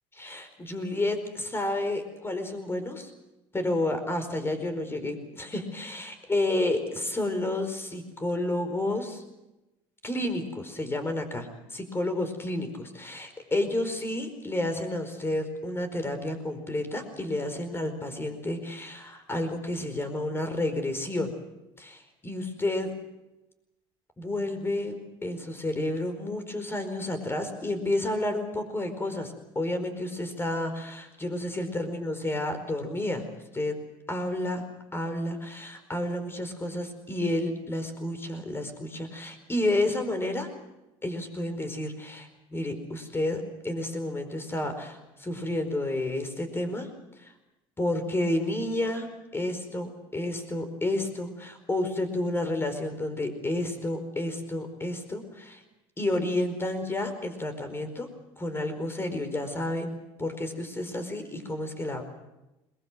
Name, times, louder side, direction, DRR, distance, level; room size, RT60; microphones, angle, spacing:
voice 1, 0.2-3.1 3.5-9.2 10.0-21.3 21.8-22.9 24.2-33.3 33.5-33.8 34.1-34.6 34.9-40.5 41.0-46.9 47.2-47.3 47.8-49.1 49.3-55.6 56.0-58.1 58.4-59.9 60.2-62.0, left 1 dB, 20° left, 8 dB, 4.7 m, -30 dB
21.5 x 21.0 x 8.0 m, 0.98 s
supercardioid pair, 85°, 13 cm